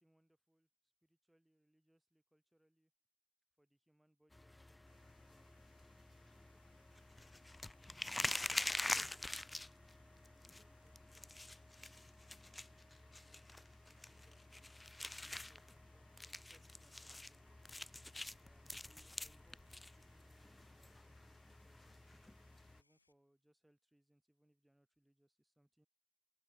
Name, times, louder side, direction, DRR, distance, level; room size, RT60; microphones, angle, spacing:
voice 1, 0.0-2.9 3.6-7.4 8.0-14.6 15.1-17.8 18.4-22.2 22.7-25.9, right 1 dB, 5° right, 3.8 m, -76 dB
sound 1, 4.3-22.8, left 2 dB, 10° left, 0.4 m, -47 dB
sound 2, 4.9-23.1, left 3 dB, 85° left, 2.4 m, -78 dB
open air
figure-of-eight pair, 50°, 0 cm